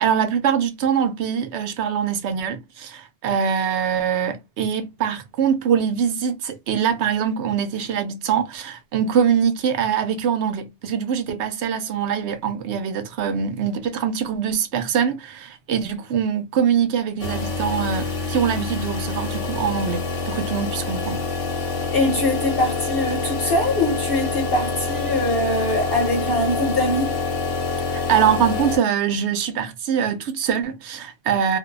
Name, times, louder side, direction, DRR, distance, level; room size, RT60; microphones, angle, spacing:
voice 1, 0.0-21.3 27.9-31.6, right 7 dB, 75° right, 0.9 m, -23 dB
sound 1, 17.2-28.8, left 4 dB, 85° left, 1.1 m, -26 dB
voice 2, 21.9-27.2, left 1 dB, 55° left, 1.0 m, -22 dB
2.6 x 2.1 x 2.3 m
omnidirectional pair, 1.2 m